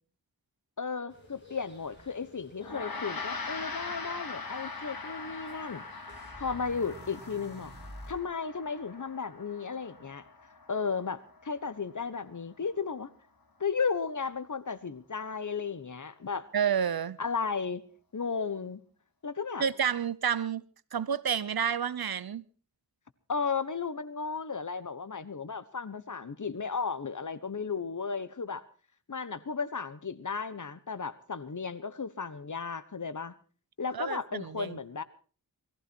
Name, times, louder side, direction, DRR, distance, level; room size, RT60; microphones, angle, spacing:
voice 1, 0.8-5.8 6.4-7.7 8.1-10.2 10.7-13.1 13.6-16.5 17.2-17.8 18.1-18.8 19.2-19.6 23.3-28.6 29.1-33.3 33.8-35.0, left 5 dB, 55° left, 1.2 m, -34 dB
sound 1, 1.1-7.2, left 1 dB, 30° left, 8.0 m, -58 dB
Gong, 2.6-12.2, left 4 dB, 70° left, 2.6 m, -42 dB
sound 2, 6.1-8.2, right 1 dB, 30° right, 4.5 m, -47 dB
voice 2, 16.5-17.2 19.6-20.6 20.9-22.4 33.9-34.8, right 7 dB, 75° right, 0.8 m, -30 dB
20.5 x 14.5 x 4.5 m
wide cardioid pair, 75°, 37 cm